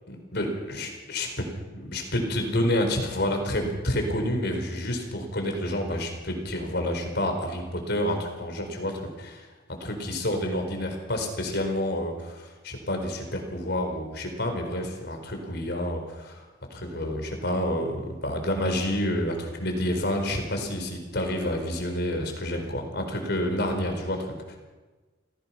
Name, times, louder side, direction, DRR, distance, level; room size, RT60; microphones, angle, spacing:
voice 1, 0.1-9.5 9.8-16.4 16.7-24.6, left 1 dB, 55° left, 4 dB, 4.5 m, -29 dB
27.5 x 17.0 x 5.9 m, 1.3 s
head